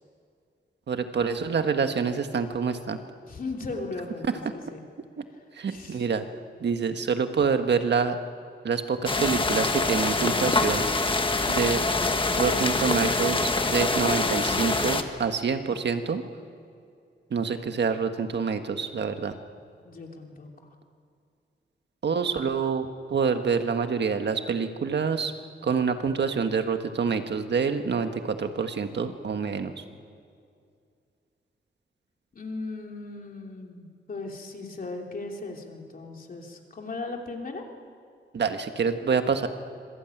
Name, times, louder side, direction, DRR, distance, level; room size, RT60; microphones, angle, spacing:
voice 1, 0.9-3.0 5.2-5.3 5.5-6.2 6.6-8.2 8.6-10.8 11.5-11.8 12.4-16.2 17.3-19.4 22.0-25.3 25.6-29.8 38.3-39.5, right 5 dB, 65° right, 7 dB, 1.6 m, -27 dB
voice 2, 3.3-4.9 5.7-6.0 19.8-20.5 32.3-37.6, left 3 dB, 50° left, 1 dB, 3.1 m, -37 dB
sound 1, 9.1-15.0, left 3 dB, 25° left, 1.4 m, -25 dB
26.0 x 22.0 x 9.2 m, 2.4 s
wide cardioid pair, 170°, 19 cm